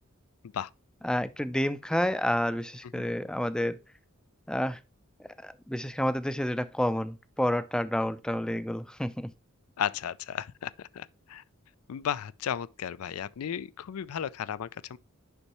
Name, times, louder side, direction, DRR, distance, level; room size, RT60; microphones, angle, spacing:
voice 1, 1.0-3.8 4.5-4.8 5.2-9.3, left 1 dB, 5° left, 0.4 m, -29 dB
voice 2, 9.8-11.4 11.9-15.0, left 9 dB, 90° left, 0.4 m, -34 dB
6.8 x 5.4 x 3.0 m
head